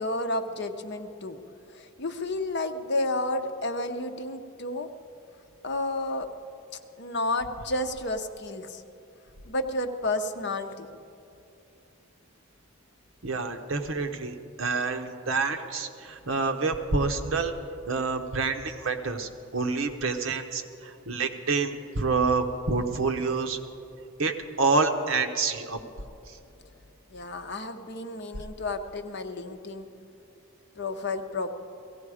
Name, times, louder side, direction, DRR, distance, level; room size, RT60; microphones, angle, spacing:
voice 1, 0.0-1.4 1.7-4.9 5.6-6.3 6.7-8.8 9.5-10.9 27.1-29.9 30.8-31.5, left 2 dB, 55° left, 7 dB, 0.8 m, -31 dB
voice 2, 13.2-17.5 17.9-23.6 24.2-25.8, right 4 dB, 70° right, 6 dB, 1.0 m, -28 dB
17.0 x 16.0 x 4.9 m, 2.7 s
head